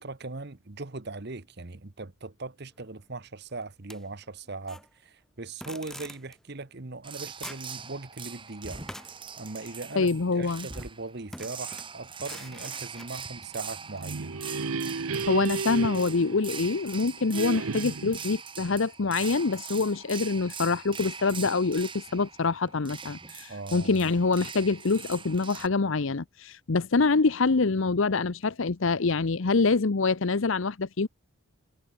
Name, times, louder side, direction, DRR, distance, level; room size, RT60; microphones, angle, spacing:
voice 1, 0.0-8.8 9.4-14.4 23.5-24.0, right 3 dB, 50° right, 1.1 m, -39 dB
sound 1, 3.9-4.9 5.6-6.4 7.1-7.2 7.4-7.7 8.7-10.1 10.7-10.9 11.3-13.2 14.0-14.1, left 1 dB, ahead, 1.3 m, -45 dB
sound 2, 7.0-25.7, right 6 dB, 25° right, 3.3 m, -42 dB
voice 2, 9.9-10.7 15.3-31.1, left 4 dB, 65° left, 0.7 m, -25 dB
sound 3, 13.8-16.9 17.3-18.3, right 4 dB, 85° right, 0.9 m, -33 dB
head